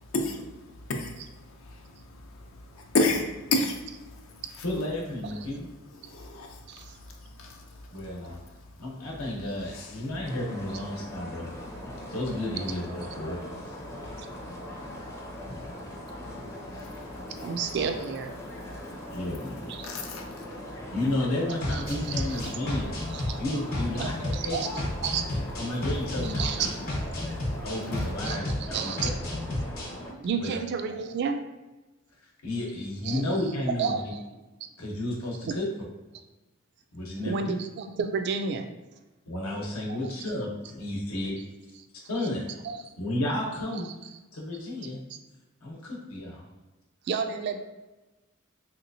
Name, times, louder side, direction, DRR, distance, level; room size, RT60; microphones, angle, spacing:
voice 1, 0.1-4.6 6.0-8.4 9.7-10.0 12.0-12.1 14.0-17.6 18.4-19.2 19.8-20.9 22.4-22.5 27.2-27.7, left 2 dB, 70° left, 2 dB, 0.5 m, -34 dB
voice 2, 4.6-5.7 7.9-8.4 8.8-11.5 12.1-13.4 19.1-19.8 20.9-22.9 23.4-24.7 25.3-26.7 27.6-28.5 28.8-28.9 30.4-30.6 32.4-34.0 34.8-35.7 36.9-37.6 39.3-41.3 42.1-42.5 43.0-43.9 44.3-45.0 45.6-46.4, left 1 dB, 85° left, -2 dB, 0.9 m, -32 dB
sound 1, 10.2-30.1, left 1 dB, 15° left, 0.5 m, -40 dB
voice 3, 17.4-18.3 19.7-19.9 21.7-21.8 23.1-23.4 24.0-24.7 25.0-25.2 26.2-27.0 28.2-29.1 30.0-31.4 33.0-33.2 33.8-34.2 37.2-38.7 39.9-40.1 42.6-42.8 47.1-47.6, right 6 dB, 55° right, 7 dB, 0.3 m, -31 dB
sound 2, 21.6-29.9, left 1 dB, 45° left, 0.9 m, -32 dB
3.2 x 2.9 x 2.6 m, 1.1 s
head